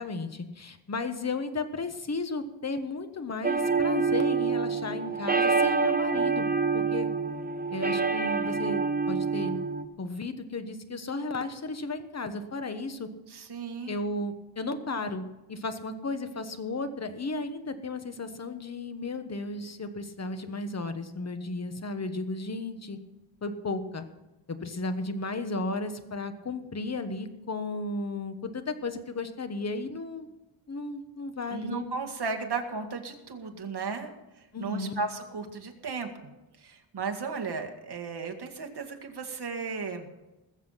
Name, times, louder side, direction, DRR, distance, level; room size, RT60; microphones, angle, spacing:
voice 1, 0.0-6.5 6.7-7.1 7.7-9.6 10.0-13.1 13.9-15.2 15.5-23.0 23.4-24.0 24.5-30.3 30.7-31.8 34.5-34.9, left 3 dB, 35° left, 9 dB, 1.3 m, -34 dB
sound 1, 3.4-9.8, right 4 dB, 20° right, 0.8 m, -27 dB
voice 2, 13.3-14.0 31.5-34.1 34.6-36.3 36.6-40.1, right 4 dB, 55° right, 4 dB, 2.0 m, -35 dB
20.5 x 7.3 x 5.7 m, 1.0 s
wide cardioid pair, 120°, 47 cm